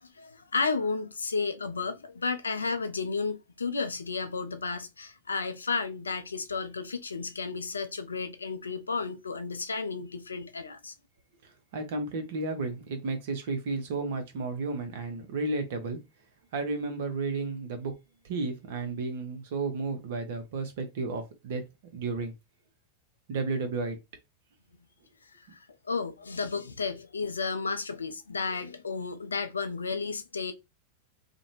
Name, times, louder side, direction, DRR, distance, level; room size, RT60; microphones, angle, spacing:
voice 1, 0.0-10.9 25.3-30.5, left 4 dB, 75° left, 0.3 m, -33 dB
voice 2, 11.7-16.0 16.5-17.9 18.2-21.6 21.9-22.3 23.3-24.0, right 3 dB, 55° right, 0.7 m, -32 dB
2.5 x 2.1 x 2.9 m
figure-of-eight pair, 90°, 0 cm